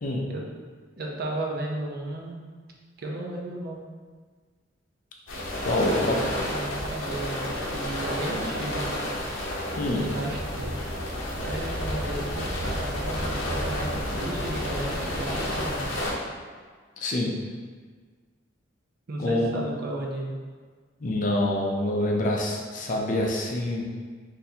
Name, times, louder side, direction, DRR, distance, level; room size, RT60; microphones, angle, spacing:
voice 1, 1.0-2.4 3.0-3.8 5.7-8.8 9.9-10.7 11.4-15.9 19.1-20.3, right 1 dB, 55° right, -1 dB, 0.5 m, -34 dB
sound 1, 5.3-16.1, left 1 dB, 85° left, 0.7 m, -30 dB
voice 2, 5.3-6.2 9.8-10.0 17.0-17.3 19.2-19.5 21.0-23.8, left 1 dB, 45° left, 0 dB, 0.5 m, -26 dB
4.0 x 2.6 x 2.7 m, 1.5 s
head